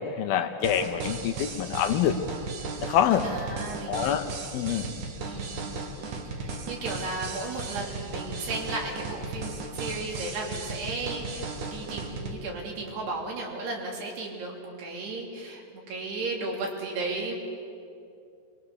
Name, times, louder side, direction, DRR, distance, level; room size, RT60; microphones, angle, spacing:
voice 1, 0.0-2.2 2.8-3.3 3.9-4.3 4.5-4.9, left 9 dB, 75° left, 7 dB, 2.4 m, -25 dB
sound 1, 0.6-12.3, right 3 dB, 55° right, 2.8 m, -36 dB
voice 2, 3.2-4.2 5.2-5.7 6.4-17.4, right 2 dB, 75° right, -1 dB, 5.0 m, -35 dB
25.0 x 22.0 x 6.6 m, 2.5 s
omnidirectional pair, 4.7 m